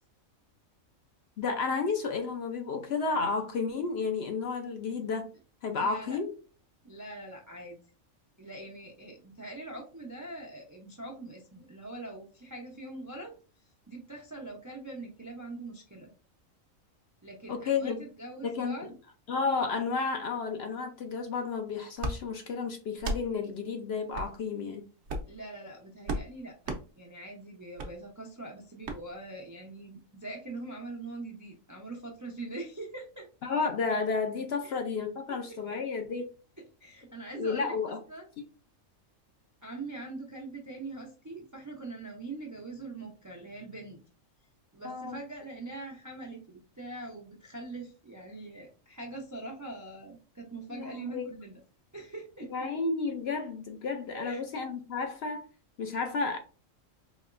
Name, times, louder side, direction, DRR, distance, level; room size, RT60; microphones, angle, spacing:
voice 1, 1.4-5.3 5.6-6.3 17.5-18.0 18.4-18.7 19.3-24.8 33.4-36.3 37.3-38.0 44.8-45.2 50.7-51.2 52.5-55.4 55.8-56.4, left 4 dB, 60° left, 0.7 m, -32 dB
voice 2, 5.7-6.2 6.8-7.8 8.4-13.3 13.9-16.1 17.2-18.9 25.3-33.3 34.6-34.7 35.3-35.6 36.8-38.3 39.6-44.0 44.7-51.6 51.9-52.7 54.1-54.4, right 2 dB, 30° right, 0.3 m, -43 dB
sound 1, 22.0-22.2 23.0-23.2 24.1-24.3 25.0-25.4 26.1-26.3 26.6-26.8 27.8-27.9 28.8-29.0, right 2 dB, 65° right, 0.9 m, -33 dB
4.1 x 2.9 x 2.4 m
omnidirectional pair, 1.4 m